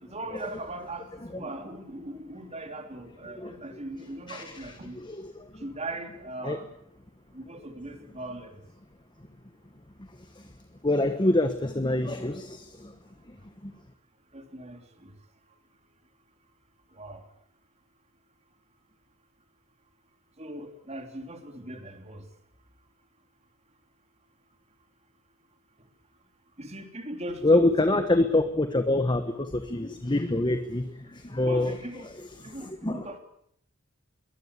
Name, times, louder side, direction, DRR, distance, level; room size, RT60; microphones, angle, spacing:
voice 1, 0.0-5.0 5.6-6.7 7.3-8.6 14.3-15.1 16.9-17.2 20.4-22.2 26.6-28.0 31.3-32.1 32.4-33.2, right 1 dB, 30° right, 6 dB, 3.1 m, -39 dB
voice 2, 4.3-5.6 6.4-6.6 10.4-10.5 10.8-12.9 13.3-13.4 13.6-13.7 27.4-31.8 32.4-33.1, left 2 dB, 20° left, 8 dB, 1.3 m, -26 dB
22.5 x 19.5 x 8.3 m, 0.72 s
head